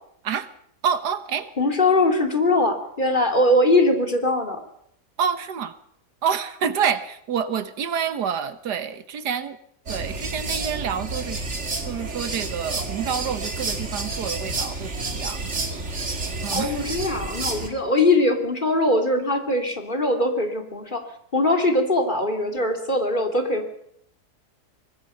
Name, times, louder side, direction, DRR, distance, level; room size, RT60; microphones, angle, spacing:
voice 1, 0.8-1.5 5.2-5.8 6.2-9.6 9.9-11.4 11.9-15.4 16.4-16.8, right 7 dB, 85° right, 12 dB, 1.8 m, -27 dB
voice 2, 1.6-4.6 16.5-21.0 21.3-23.6, left 2 dB, 30° left, 4 dB, 3.0 m, -21 dB
sound 1, 9.9-17.7, right 3 dB, 45° right, 2.5 m, -30 dB
24.5 x 20.5 x 5.7 m, 0.71 s
omnidirectional pair, 1.7 m